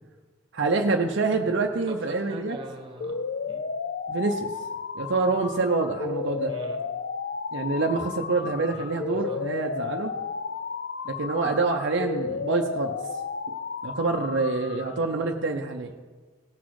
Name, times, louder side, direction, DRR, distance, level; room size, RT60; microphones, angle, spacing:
voice 1, 0.5-2.6 4.1-4.5 4.9-6.5 7.5-10.1 11.1-13.0 13.8-15.9, right 3 dB, 60° right, 3 dB, 0.6 m, -26 dB
voice 2, 1.4-3.2 3.5-3.6 5.0-5.3 6.5-6.8 8.4-9.5 12.3-12.5 14.9-15.1, right 1 dB, 25° right, 4 dB, 1.4 m, -43 dB
sound 1, 3.0-15.0, left 5 dB, 50° left, 0.4 m, -33 dB
17.0 x 6.2 x 4.7 m, 1.4 s
head